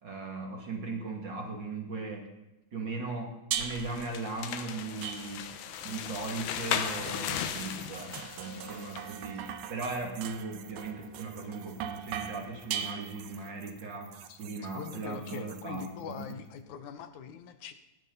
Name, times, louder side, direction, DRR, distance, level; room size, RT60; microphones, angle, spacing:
voice 1, 0.0-2.3 2.7-5.5 5.8-16.4, right 3 dB, 35° right, 2 dB, 2.5 m, -38 dB
sound 1, 3.5-9.1, left 9 dB, 90° left, 3.1 m, -37 dB
sound 2, 3.5-4.1 5.0-5.7 6.6-13.5, right 9 dB, 90° right, 3.0 m, -40 dB
sound 3, 5.6-16.5, right 11 dB, 70° right, 1.8 m, -54 dB
voice 2, 14.7-17.7, left 8 dB, 70° left, 9 dB, 2.0 m, -42 dB
19.5 x 15.5 x 4.1 m, 0.99 s
omnidirectional pair, 4.3 m